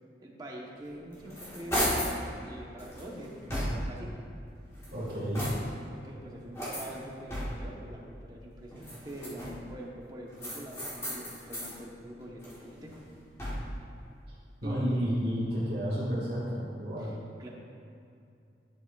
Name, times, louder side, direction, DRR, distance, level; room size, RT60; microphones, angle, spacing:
voice 1, 0.2-2.1 2.4-4.2 5.9-12.9 14.6-15.1 17.0-17.5, right 1 dB, 20° right, -3 dB, 0.9 m, -44 dB
sound 1, 0.9-2.2 2.8-4.1 4.7-5.9 6.5-7.8 8.7-9.7 10.4-11.8 12.2-13.9, equal, 15° left, 1.4 m, -35 dB
voice 2, 4.9-5.5 14.6-17.1, equal, 65° right, -9 dB, 1.6 m, -31 dB
10.5 x 6.8 x 2.3 m, 2.5 s
head